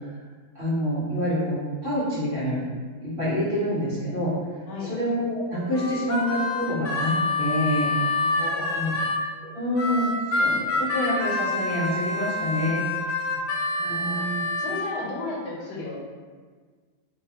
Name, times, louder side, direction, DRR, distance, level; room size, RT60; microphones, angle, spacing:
voice 1, 0.5-2.6 3.0-4.3 4.9-8.0 8.7-8.9 9.5-10.1 10.3-12.8 13.9-14.4, equal, 40° right, -12 dB, 1.2 m, -27 dB
voice 2, 4.7-5.0 7.9-8.9 13.3-14.3 14.6-16.1, left 2 dB, 90° left, -3 dB, 1.3 m, -35 dB
Harmonica, 5.7-9.2 9.8-14.9, left 2 dB, 70° left, 0.7 m, -27 dB
3.2 x 2.3 x 2.8 m, 1.5 s
omnidirectional pair, 1.8 m